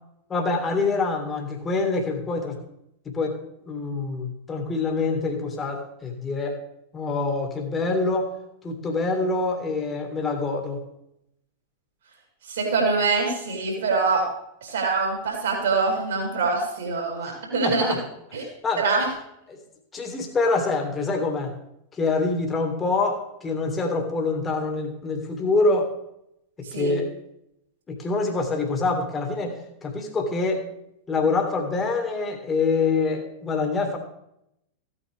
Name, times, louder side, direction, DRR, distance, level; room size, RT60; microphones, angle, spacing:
voice 1, 0.3-2.6 3.1-3.4 3.7-6.6 6.9-8.3 8.6-10.8 17.3-18.0 18.6-18.8 19.5-19.6 19.9-21.5 21.9-25.9 26.6-27.1 27.9-30.6 31.1-34.0, left 3 dB, 20° left, 3 dB, 2.2 m, -25 dB
voice 2, 12.4-14.2 14.6-18.0 18.3-18.4 18.8-19.1 26.7-27.0, right 4 dB, 65° right, 0 dB, 4.1 m, -24 dB
15.5 x 9.1 x 3.6 m, 0.80 s
figure-of-eight pair, 90°, 0 cm